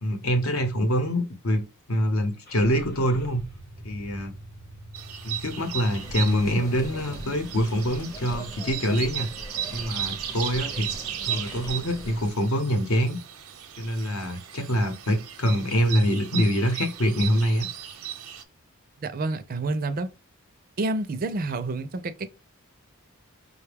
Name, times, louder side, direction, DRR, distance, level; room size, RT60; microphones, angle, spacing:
voice 1, 0.0-1.6 1.9-3.5 3.8-4.3 5.2-9.3 9.7-10.9 11.2-13.2 13.8-17.7, equal, 75° left, 0.9 m, -25 dB
Car / Engine starting, 2.5-7.9, right 1 dB, 45° left, 0.8 m, -44 dB
sound 1, 4.9-18.4, right 10 dB, 85° right, 0.6 m, -36 dB
sound 2, 5.9-12.3, equal, 15° left, 0.5 m, -41 dB
voice 2, 19.0-20.1 20.8-22.4, right 2 dB, 40° right, 0.4 m, -29 dB
5.1 x 2.2 x 3.4 m
head